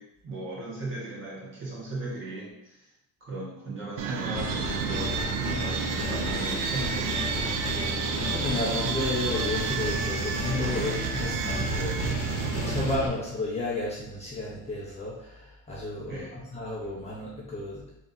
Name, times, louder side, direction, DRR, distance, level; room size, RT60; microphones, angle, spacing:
voice 1, 0.0-2.8 3.2-5.2 5.5-7.6 16.1-16.5, right 2 dB, 30° right, -6 dB, 1.5 m, -37 dB
sound 1, 4.0-13.0, right 7 dB, 60° right, 0.5 m, -31 dB
sound 2, 4.3-13.1, left 1 dB, 40° left, 1.0 m, -33 dB
voice 2, 7.7-17.8, left 2 dB, 15° left, -6 dB, 0.7 m, -33 dB
3.5 x 2.7 x 4.0 m, 0.84 s
cardioid pair, 140°, 37 cm